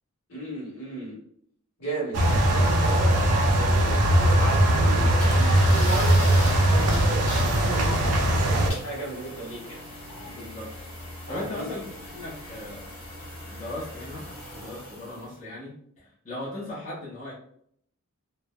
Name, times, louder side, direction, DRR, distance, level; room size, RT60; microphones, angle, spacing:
voice 1, 0.3-1.2 1.8-3.3 3.5-9.8 11.3-11.7, right 2 dB, 65° left, -4 dB, 1.3 m, -35 dB
sound 1, 2.1-8.7, right 1 dB, 90° right, 0.5 m, -20 dB
sound 2, 5.2-15.3, left 1 dB, 5° left, 1.0 m, -39 dB
voice 2, 10.3-10.7 11.3-12.9 13.5-14.3 14.5-17.3, left 1 dB, 30° left, -9 dB, 0.7 m, -38 dB
3.2 x 2.0 x 2.2 m, 0.66 s
head